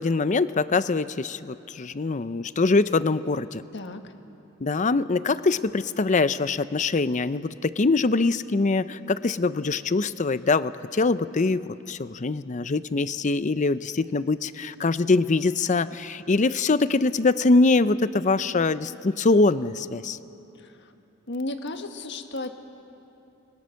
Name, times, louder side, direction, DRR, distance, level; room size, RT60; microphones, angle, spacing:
voice 1, 0.0-3.6 4.6-20.2, left 3 dB, 40° left, 14 dB, 0.6 m, -23 dB
voice 2, 3.7-4.1 20.6-20.9 21.3-22.5, left 2 dB, 60° left, 6 dB, 1.5 m, -34 dB
29.5 x 22.5 x 6.4 m, 2.9 s
head